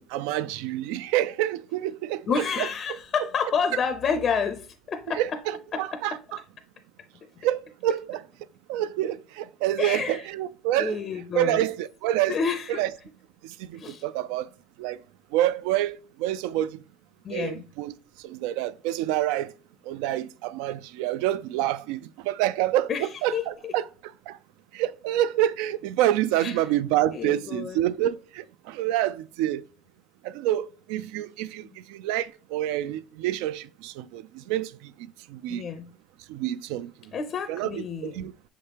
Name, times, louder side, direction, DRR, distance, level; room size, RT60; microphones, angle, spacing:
voice 1, 0.0-2.7 5.1-6.2 7.4-8.2 8.7-11.0 11.3-12.4 12.8-12.9 13.4-14.5 14.8-15.0 15.3-16.7 17.3-17.9 18.2-19.5 19.9-23.8 24.3-24.4 24.7-29.6 30.2-34.9 35.3-35.7 36.3-36.9 37.5-38.3, right 13 dB, 90° right, 0.4 m, -27 dB
voice 2, 2.3-5.4 5.7-6.2 9.8-10.3 10.8-11.7 12.3-12.8 13.7-14.0 17.2-17.6 22.9-23.7 26.4-26.7 27.1-27.8 31.6-31.7 35.5-35.9 37.1-38.3, left 6 dB, 30° left, 0.5 m, -29 dB
6.4 x 5.0 x 2.9 m
cardioid pair, 160°, 0 cm